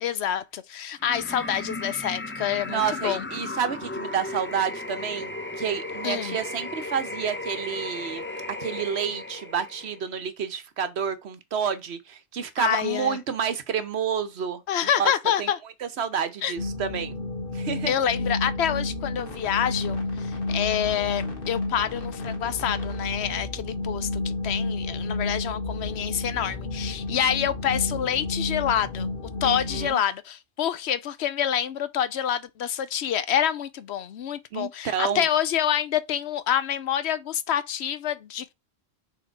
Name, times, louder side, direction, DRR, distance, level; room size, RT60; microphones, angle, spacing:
voice 1, 0.0-3.3 6.0-6.4 12.6-13.2 14.7-15.6 16.4-16.5 17.9-29.1 29.4-38.5, left 9 dB, 75° left, 0.9 m, -27 dB
sound 1, 1.0-10.0, left 2 dB, 15° left, 0.6 m, -35 dB
voice 2, 2.7-8.2 8.6-14.6 14.9-15.1 15.4-15.5 15.8-17.2 17.5-18.0 29.4-30.0 34.5-35.3, right 7 dB, 70° right, 1.1 m, -29 dB
sound 2, 16.6-29.9, left 2 dB, 55° left, 1.8 m, -31 dB
6.4 x 3.6 x 4.6 m
omnidirectional pair, 1.1 m